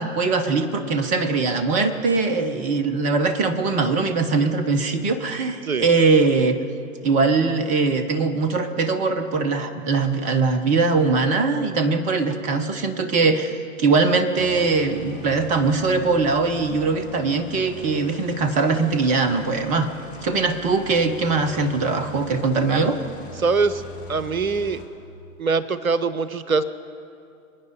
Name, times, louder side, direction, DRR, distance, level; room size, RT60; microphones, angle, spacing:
voice 1, 0.0-6.6 7.0-19.9 20.2-23.0, right 4 dB, 20° right, 10 dB, 0.9 m, -21 dB
sound 1, 14.4-24.9, left 3 dB, 50° left, 2.4 m, -41 dB
voice 2, 23.4-23.8 24.1-24.8 25.4-26.6, right 4 dB, 80° right, 15 dB, 0.8 m, -22 dB
26.5 x 9.4 x 5.3 m, 2.5 s
figure-of-eight pair, 110°, 41 cm